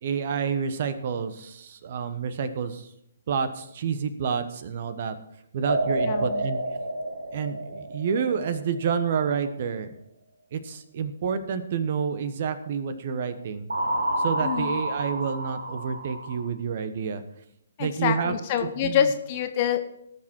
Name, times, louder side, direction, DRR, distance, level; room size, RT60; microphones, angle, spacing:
voice 1, 0.0-2.9 3.3-5.2 5.5-6.6 7.3-9.9 10.5-13.7 14.2-17.2 17.8-18.3 18.8-19.1, right 6 dB, 50° right, 11 dB, 1.1 m, -29 dB
sound 1, 5.7-8.9 13.7-16.5, right 1 dB, 80° right, 1.4 m, -29 dB
voice 2, 6.0-6.5 14.4-14.8 17.8-19.8, left 9 dB, 35° left, 8 dB, 0.9 m, -26 dB
17.5 x 6.4 x 4.5 m, 0.77 s
figure-of-eight pair, 135°, 0 cm